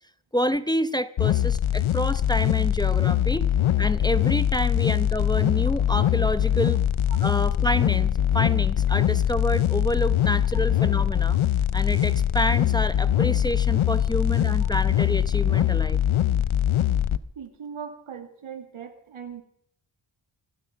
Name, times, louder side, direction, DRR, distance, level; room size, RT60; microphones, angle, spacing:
voice 1, 0.3-3.5 3.8-6.8 7.2-11.4 11.7-16.0, equal, 10° left, 12 dB, 0.8 m, -28 dB
sound 1, 1.2-17.2, left 10 dB, 80° left, 0.7 m, -22 dB
voice 2, 17.4-19.4, right 7 dB, 85° right, 7 dB, 2.2 m, -39 dB
25.0 x 8.4 x 5.9 m, 0.71 s
cardioid pair, 55°, 48 cm